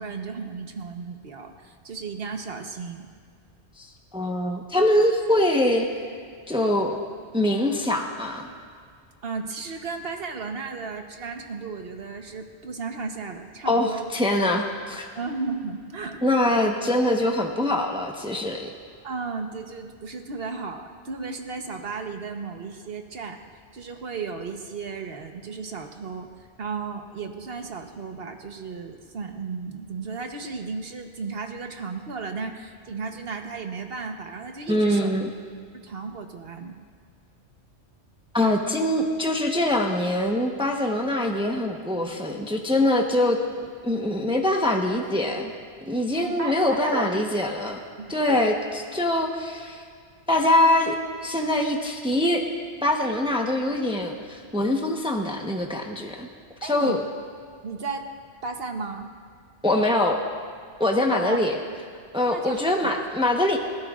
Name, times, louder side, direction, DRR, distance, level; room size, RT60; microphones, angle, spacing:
voice 1, 0.0-3.1 9.2-14.1 15.1-16.5 19.0-23.4 23.7-26.3 26.6-35.1 35.7-36.8 46.1-47.2 48.0-48.4 56.6-57.0 57.6-58.0 58.4-59.1 61.1-61.4 62.3-62.6, right 4 dB, 60° right, 5 dB, 1.2 m, -34 dB
voice 2, 3.8-5.9 6.5-7.0 7.3-8.5 13.6-15.1 16.2-18.7 34.7-35.3 38.3-45.5 45.9-47.8 48.1-49.8 50.3-51.0 51.2-52.4 52.8-56.3 56.6-57.0 59.6-60.2 60.8-61.5 62.1-63.6, left 1 dB, 5° right, 1 dB, 0.9 m, -23 dB
29.0 x 13.5 x 2.5 m, 2.2 s
omnidirectional pair, 1.2 m